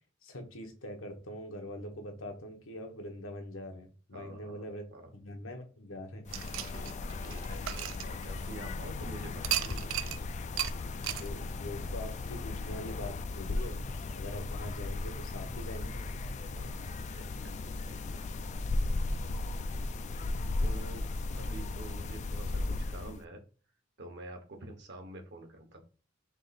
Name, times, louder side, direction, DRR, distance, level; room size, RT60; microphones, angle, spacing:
voice 1, 0.2-4.8 5.1-6.3 10.8-13.8 14.1-16.1, left 1 dB, 80° left, 3 dB, 1.1 m, -43 dB
voice 2, 4.1-5.1 6.7-9.9 16.4-18.2 20.6-21.1 21.3-23.4 24.0-25.8, right 2 dB, 60° right, 5 dB, 1.0 m, -48 dB
sound 1, 6.3-23.2, left 2 dB, 35° left, 0.3 m, -36 dB
sound 2, 6.3-8.7 9.4-10.2 10.6-10.7 11.0-11.3, right 13 dB, 75° right, 0.3 m, -35 dB
3.6 x 3.1 x 4.1 m, 0.37 s
head